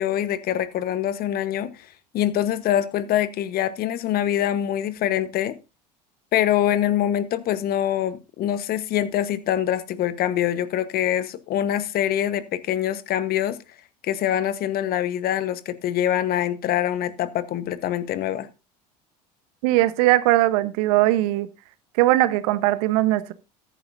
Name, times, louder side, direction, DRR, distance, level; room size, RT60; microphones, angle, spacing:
voice 1, 0.0-1.7 2.1-5.6 6.3-13.6 14.0-18.5, left 11 dB, 50° left, 1.2 m, -24 dB
voice 2, 19.6-21.5 22.0-23.3, right 16 dB, 65° right, 1.0 m, -20 dB
14.0 x 11.0 x 2.6 m
hypercardioid pair, 75°, 21 cm